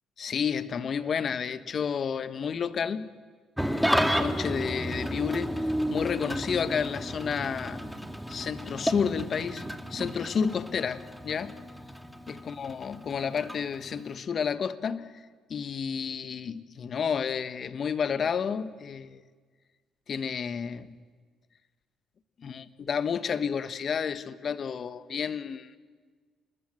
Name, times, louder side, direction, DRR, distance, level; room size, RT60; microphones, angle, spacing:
voice 1, 0.2-3.1 4.0-7.8 8.3-9.6 9.9-11.6 12.3-15.2 15.5-19.2 20.1-21.0 22.4-25.7, left 6 dB, 55° left, 1.4 m, -31 dB
Engine starting / Idling, 3.6-14.2, equal, ahead, 2.5 m, -32 dB
28.5 x 20.5 x 7.8 m
hypercardioid pair, 50°, 0 cm